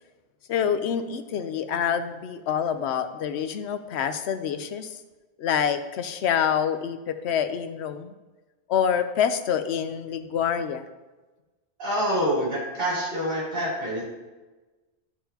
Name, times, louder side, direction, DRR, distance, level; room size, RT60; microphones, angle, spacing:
voice 1, 0.5-5.0 5.4-8.1 8.7-10.8, left 8 dB, 75° left, 10 dB, 0.9 m, -26 dB
voice 2, 11.8-14.0, equal, 55° right, -8 dB, 3.2 m, -26 dB
13.0 x 5.8 x 2.8 m, 1.2 s
omnidirectional pair, 1.1 m